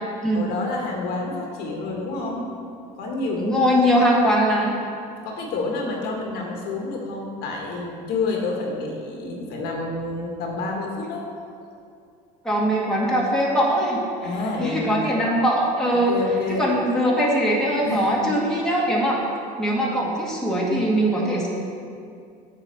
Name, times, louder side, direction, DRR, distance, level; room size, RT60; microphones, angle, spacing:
voice 1, 0.3-2.4 3.0-3.7 5.2-11.2 14.2-15.1 15.9-16.6 17.8-18.3, left 3 dB, 65° left, 0 dB, 1.5 m, -29 dB
voice 2, 3.4-4.7 12.4-14.3 14.6-16.2 16.5-19.2 19.6-21.5, equal, 5° left, -5 dB, 1.7 m, -21 dB
8.8 x 4.2 x 6.9 m, 2.4 s
cardioid pair, 135°, 18 cm